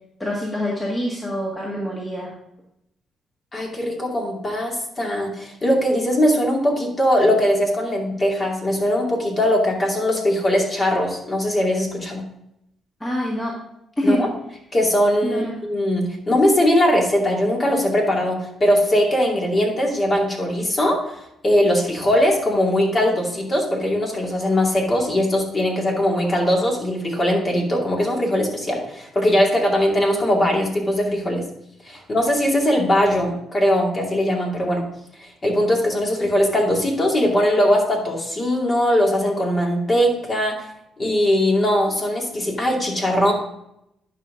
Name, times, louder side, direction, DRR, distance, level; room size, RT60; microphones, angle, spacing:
voice 1, 0.2-2.3 13.0-13.6 14.0-14.3 15.2-15.5, equal, 15° left, -4 dB, 1.9 m, -25 dB
voice 2, 3.5-12.2 14.0-14.3 14.7-21.1 21.4-31.4 31.8-34.8 35.4-40.6 41.0-43.3, equal, 30° left, -1 dB, 2.5 m, -20 dB
10.5 x 5.5 x 3.7 m, 0.80 s
cardioid pair, 90°, 0 cm